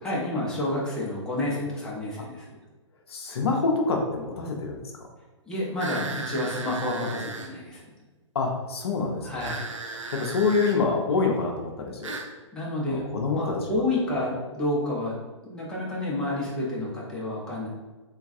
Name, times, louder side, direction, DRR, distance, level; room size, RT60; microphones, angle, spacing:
voice 1, 0.0-2.6 5.5-7.8 9.2-9.6 12.5-13.0 13.3-15.2 15.4-17.7, left 1 dB, 5° left, -6 dB, 0.5 m, -29 dB
voice 2, 3.1-4.8 8.3-9.5 10.1-12.1 12.9-13.6, left 4 dB, 55° left, 1 dB, 0.5 m, -26 dB
sound 1, 5.8-7.5 9.4-10.8 12.0-12.3, right 4 dB, 75° right, 0.4 m, -36 dB
3.4 x 2.2 x 2.5 m, 1.2 s
figure-of-eight pair, 115°, 16 cm